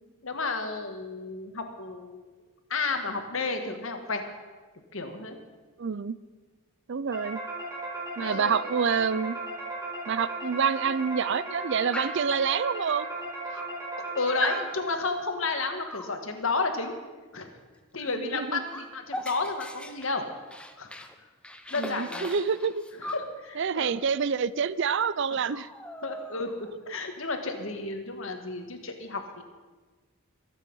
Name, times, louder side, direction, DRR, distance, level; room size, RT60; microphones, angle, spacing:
voice 1, 0.2-2.2 2.7-4.2 4.9-5.4 8.2-8.6 14.2-16.9 17.3-17.5 17.9-20.2 20.8-21.1 21.7-22.3 23.0-23.9 25.3-25.4 26.0-29.4, left 3 dB, 60° left, 5 dB, 1.7 m, -32 dB
voice 2, 5.8-6.2 6.9-7.4 8.2-9.4 10.1-13.1 18.2-18.6 21.8-22.7 23.6-25.7, right 6 dB, 55° right, 18 dB, 0.4 m, -27 dB
sound 1, 7.1-15.0, right 2 dB, 15° right, 4.0 m, -36 dB
Dog, 11.9-12.3 13.2-13.3 13.5-14.1 14.4-14.7 15.9-16.2 18.0-18.2 18.4-21.1 21.4-23.3 24.6-24.7 25.0-25.2 25.5-26.7, left 1 dB, 5° left, 0.7 m, -38 dB
23.0 x 8.5 x 5.5 m, 1.3 s
head